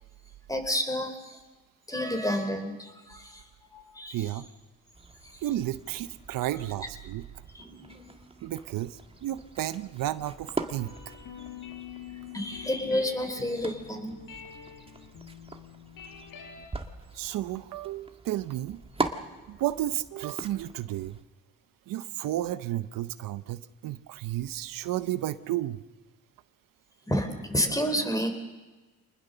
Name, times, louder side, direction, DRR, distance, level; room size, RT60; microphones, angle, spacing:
voice 1, 0.5-1.4 1.9-3.4 3.7-4.2 7.5-8.2 12.3-14.2 27.1-28.3, equal, 10° left, 6 dB, 3.9 m, -30 dB
voice 2, 4.1-4.5 5.4-7.2 8.4-10.9 17.1-18.8 19.5-21.2 21.9-25.8, right 14 dB, 80° right, 13 dB, 0.8 m, -32 dB
sound 1, 4.9-21.2, right 3 dB, 15° right, 1.9 m, -41 dB
sound 2, 10.6-16.7, left 8 dB, 75° left, 4.6 m, -45 dB
25.0 x 20.0 x 6.8 m, 1.2 s
cardioid pair, 80°, 33 cm